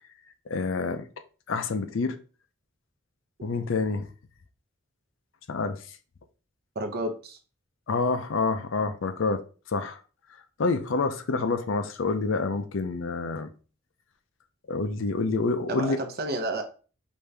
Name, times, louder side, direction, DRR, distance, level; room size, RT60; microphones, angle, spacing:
voice 1, 0.5-1.1 1.5-2.2 3.4-4.1 5.5-5.8 7.9-9.4 9.7-10.0 10.6-13.5 14.7-16.0, left 4 dB, 65° left, 0.5 m, -27 dB
voice 2, 6.8-7.4 15.7-16.6, right 1 dB, 50° right, 0.7 m, -31 dB
5.1 x 2.7 x 3.3 m
head